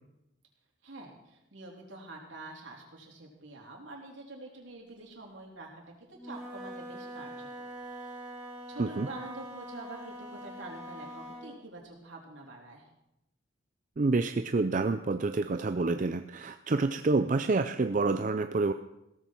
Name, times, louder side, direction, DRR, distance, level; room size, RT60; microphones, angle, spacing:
voice 1, 0.8-5.8 6.1-8.3 8.7-12.9, right 2 dB, 70° right, 0 dB, 3.4 m, -46 dB
Wind instrument woodwind instrument, 6.1-11.5, right 1 dB, 5° right, 2.9 m, -43 dB
voice 2, 14.0-18.7, right 3 dB, 40° right, 8 dB, 0.4 m, -28 dB
16.5 x 14.0 x 4.5 m, 0.87 s
head